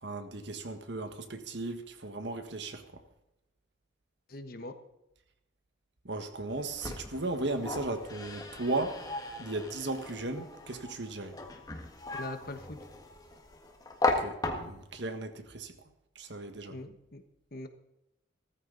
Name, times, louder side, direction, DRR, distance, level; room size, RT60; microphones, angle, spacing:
voice 1, 0.0-2.8 6.0-9.0 9.4-11.4 14.2-15.7 16.1-16.8, right 2 dB, 60° right, 1.6 m, -36 dB
voice 2, 4.3-4.7 12.2-12.8 16.7-17.2 17.5-17.7, left 2 dB, 45° left, 1.3 m, -41 dB
sound 1, 6.5-15.0, left 2 dB, 20° left, 1.6 m, -37 dB
16.5 x 14.0 x 4.0 m
head